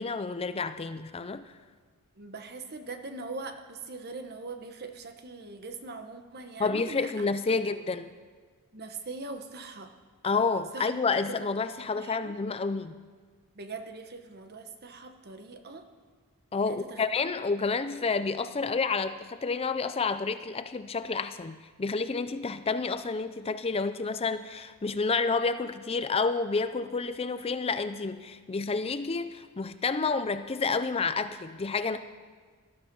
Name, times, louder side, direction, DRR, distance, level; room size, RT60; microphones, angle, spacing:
voice 1, 0.0-1.4 6.6-8.1 10.2-13.0 16.5-32.0, left 4 dB, 25° left, 11 dB, 0.5 m, -29 dB
voice 2, 2.2-7.2 8.7-9.9 10.7-11.0 11.3-11.5 11.9-12.3 13.5-15.9 16.6-17.0, right 3 dB, 45° right, 7 dB, 1.2 m, -41 dB
18.5 x 12.5 x 5.4 m, 1.5 s
head